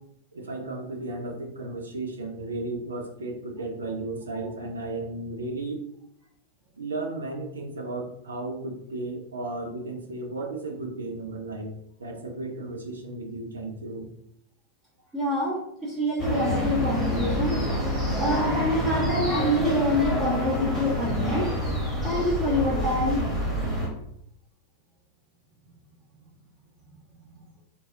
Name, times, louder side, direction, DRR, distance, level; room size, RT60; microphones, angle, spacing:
voice 1, 0.3-5.8 6.8-11.7 12.0-14.1, right 2 dB, 70° right, 3 dB, 0.4 m, -34 dB
voice 2, 15.1-17.5 18.2-21.5 22.0-23.2, left 1 dB, 20° right, -8 dB, 0.9 m, -26 dB
sound 1, 16.2-23.9, equal, ahead, 1.2 m, -27 dB
3.2 x 2.2 x 2.6 m, 0.73 s
figure-of-eight pair, 90°, 0 cm